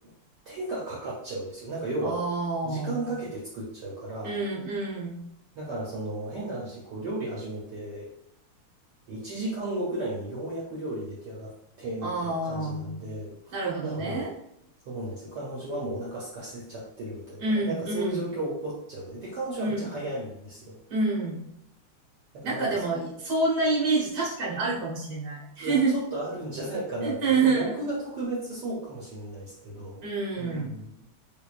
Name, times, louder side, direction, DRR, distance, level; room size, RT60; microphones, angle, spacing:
voice 1, 0.5-2.2 2.6-4.3 5.6-8.1 9.1-13.6 13.8-14.3 14.9-20.8 22.3-23.1 25.6-30.1 30.4-30.9, right 1 dB, 65° right, -5 dB, 1.1 m, -34 dB
voice 2, 2.0-3.1 4.2-5.2 12.0-13.0 13.5-14.3 17.4-18.2 19.6-19.9 20.9-21.4 22.4-25.9 27.0-27.7 30.0-30.7, right 3 dB, 40° right, -5 dB, 0.8 m, -27 dB
3.6 x 3.0 x 2.4 m, 0.77 s
omnidirectional pair, 2.4 m